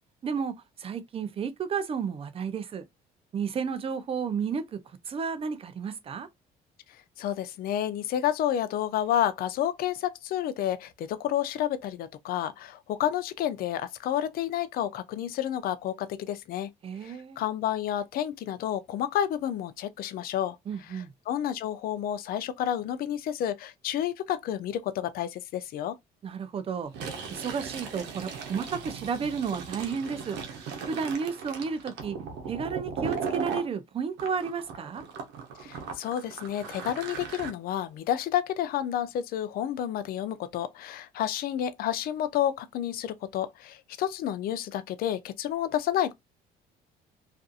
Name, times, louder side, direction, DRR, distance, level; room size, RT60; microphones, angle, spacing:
voice 1, 0.2-0.5 0.8-2.8 3.3-4.8 5.1-6.3 16.8-17.4 20.7-21.1 26.2-26.9 27.3-30.4 30.9-32.2 32.5-35.0, right 6 dB, 35° right, 0.4 m, -32 dB
voice 2, 7.2-16.7 17.0-20.6 20.8-26.0 35.6-46.1, left 11 dB, 60° left, 0.4 m, -30 dB
Fill (with liquid), 26.9-33.7 34.2-37.5, right 5 dB, 85° right, 0.7 m, -37 dB
2.5 x 2.4 x 2.5 m
cardioid pair, 110°, 17 cm